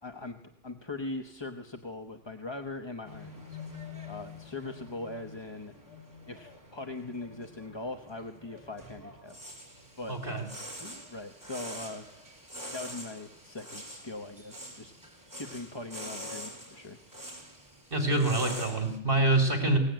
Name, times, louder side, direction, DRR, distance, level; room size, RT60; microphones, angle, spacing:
voice 1, 0.0-3.6 4.1-5.7 6.3-9.4 10.0-10.2 10.8-12.1 12.7-14.9 15.3-17.0, left 2 dB, 25° left, 6 dB, 0.9 m, -41 dB
sound 1, 3.0-19.0, left 1 dB, 15° right, 3.8 m, -45 dB
voice 2, 10.1-10.4 17.9-19.8, right 2 dB, 45° right, 4 dB, 3.0 m, -26 dB
22.0 x 18.5 x 9.1 m, 0.78 s
omnidirectional pair, 1.3 m